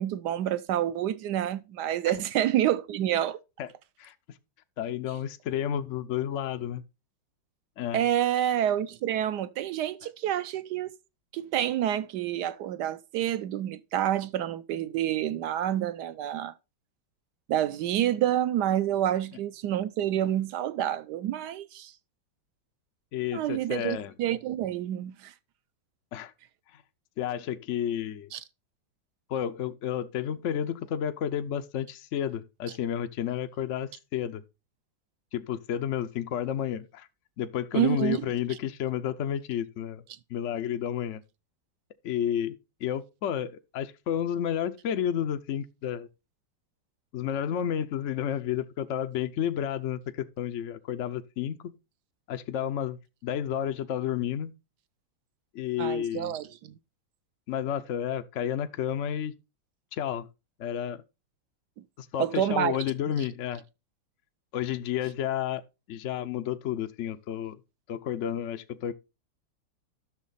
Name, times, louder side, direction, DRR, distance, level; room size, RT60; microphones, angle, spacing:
voice 1, 0.0-3.4 7.9-10.9 11.3-16.5 17.5-21.9 23.3-25.3 28.3-28.4 37.7-38.3 55.8-56.7 62.2-62.8, right 11 dB, 70° right, 1.1 m, -28 dB
voice 2, 4.8-6.8 7.8-8.0 23.1-24.1 26.1-26.3 26.7-26.8 27.2-28.3 29.3-34.4 35.3-37.1 37.4-40.0 40.3-41.2 42.0-42.6 42.8-46.1 47.1-51.7 52.3-54.5 55.5-56.4 57.5-59.3 59.9-60.3 60.6-61.0 62.0-63.6 64.5-65.6 65.9-67.6 67.9-68.9, left 10 dB, 70° left, 0.7 m, -31 dB
11.5 x 6.5 x 4.0 m
omnidirectional pair, 2.1 m